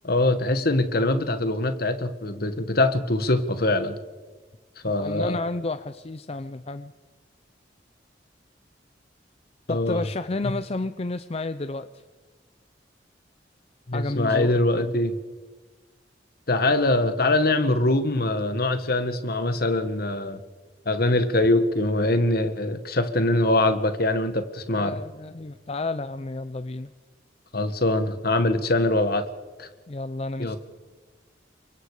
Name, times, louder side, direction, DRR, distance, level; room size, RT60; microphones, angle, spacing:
voice 1, 0.0-4.0 4.8-5.4 9.7-10.1 10.4-10.5 13.9-15.2 16.5-20.4 20.8-25.0 27.5-29.3 29.6-29.7 30.4-30.6, left 2 dB, 55° left, 10 dB, 1.6 m, -23 dB
voice 2, 5.0-6.9 9.7-12.0 13.9-14.9 24.7-26.9 29.9-30.6, left 2 dB, 35° left, 11 dB, 0.6 m, -31 dB
29.0 x 23.5 x 5.0 m, 1.3 s
head